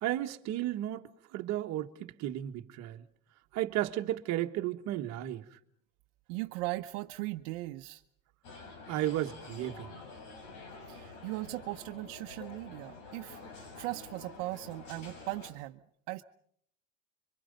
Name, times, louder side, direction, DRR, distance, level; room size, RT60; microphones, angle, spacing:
voice 1, 0.0-3.0 3.5-5.5 8.9-9.9, right 13 dB, 50° right, 1.4 m, -34 dB
voice 2, 6.3-8.0 10.9-13.4 13.7-16.2, right 19 dB, 75° right, 0.9 m, -38 dB
sound 1, 8.4-15.5, left 3 dB, 85° left, 7.0 m, -48 dB
27.0 x 24.5 x 5.3 m
cardioid pair, 155°, 36 cm